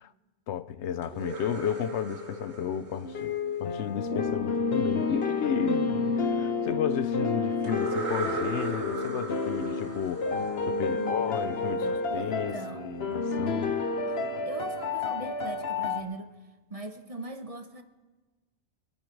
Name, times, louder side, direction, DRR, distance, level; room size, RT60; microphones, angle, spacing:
voice 1, 0.5-3.3 3.6-10.3 10.6-13.8, left 9 dB, 85° left, 1.0 m, -33 dB
sound 1, 1.0-4.0 7.6-11.4, right 2 dB, 85° right, 2.1 m, -36 dB
sound 2, 3.0-16.0, left 4 dB, 65° left, 1.2 m, -30 dB
voice 2, 10.8-11.2 11.8-12.9 14.1-16.3 16.7-17.8, right 2 dB, 35° right, 0.9 m, -41 dB
25.5 x 9.1 x 4.7 m
omnidirectional pair, 1.1 m